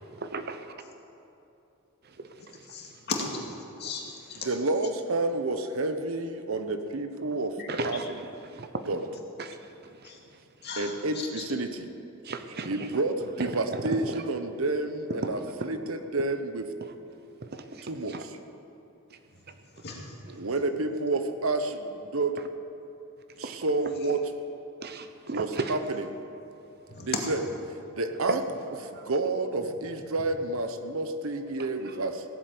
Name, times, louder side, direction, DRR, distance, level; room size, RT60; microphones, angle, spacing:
voice 1, 0.2-0.7 7.7-8.2 8.5-8.8 9.4-9.6 12.2-12.7 13.4-13.5 14.1-14.2 17.5-18.2 20.3-20.4 23.4-23.6 24.8-25.8 28.3-28.4 28.9-29.0, right 3 dB, 50° right, 8 dB, 0.8 m, -35 dB
voice 2, 2.7-3.4 3.8-4.4 7.6-7.7 10.0-10.2 10.6-11.4 19.8-20.0 26.9-27.0, left 4 dB, 50° left, 0 dB, 2.2 m, -36 dB
voice 3, 4.4-7.6 7.8-8.1 8.9-9.0 10.8-11.9 12.7-16.7 17.8-18.4 20.4-22.3 23.4-24.2 25.3-26.0 27.0-27.4 27.9-28.4 28.8-32.2, right 2 dB, 75° right, 8 dB, 1.0 m, -29 dB
17.0 x 7.7 x 8.5 m, 2.9 s
head